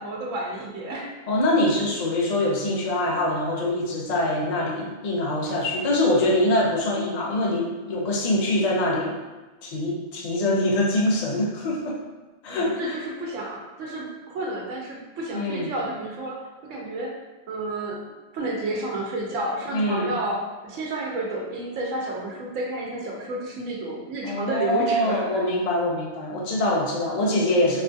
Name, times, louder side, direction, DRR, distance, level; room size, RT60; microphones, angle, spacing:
voice 1, 0.0-1.1 12.5-16.4 16.7-17.1 17.5-18.0 18.3-25.4, right 2 dB, 85° right, -2 dB, 1.0 m, -31 dB
voice 2, 1.3-9.2 9.6-12.0 12.4-13.0 15.3-15.7 19.7-20.1 24.2-27.8, left 1 dB, 45° left, -2 dB, 0.6 m, -24 dB
4.2 x 2.3 x 2.6 m, 1.2 s
omnidirectional pair, 1.2 m